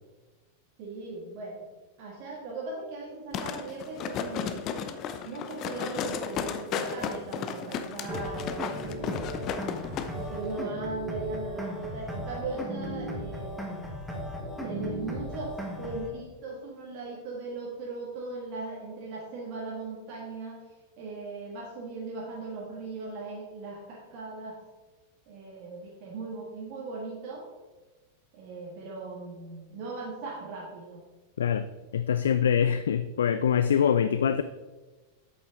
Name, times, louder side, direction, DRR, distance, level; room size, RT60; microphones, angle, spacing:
voice 1, 0.8-1.6 2.0-4.7 5.2-9.5 10.1-13.9 14.6-20.6 21.0-24.6 25.3-27.4 28.3-31.0 33.7-33.9, right 3 dB, 45° right, -3 dB, 1.7 m, -38 dB
sound 1, 3.3-10.1 10.4-10.5, left 7 dB, 35° left, 0.7 m, -34 dB
sound 2, 8.1-16.1, equal, 5° right, 1.6 m, -36 dB
voice 2, 31.9-34.4, left 8 dB, 65° left, 11 dB, 0.3 m, -24 dB
8.4 x 7.9 x 3.9 m, 1.2 s
figure-of-eight pair, 90°, 0 cm